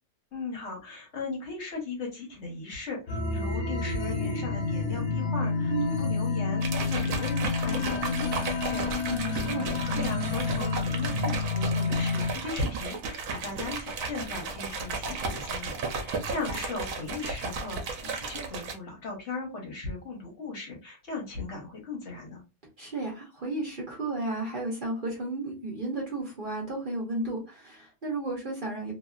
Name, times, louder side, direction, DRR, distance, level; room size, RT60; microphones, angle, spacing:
voice 1, 0.3-9.4 9.9-15.8 16.0-22.4, left 3 dB, 55° left, 0 dB, 1.2 m, -37 dB
sound 1, 3.1-12.3, left 4 dB, 75° left, 1.1 m, -29 dB
sound 2, 6.6-18.7, right 4 dB, 70° right, 1.0 m, -34 dB
voice 2, 9.1-9.7 22.8-28.9, right 2 dB, 40° right, -3 dB, 0.9 m, -33 dB
2.8 x 2.7 x 2.3 m, 0.28 s
omnidirectional pair, 1.5 m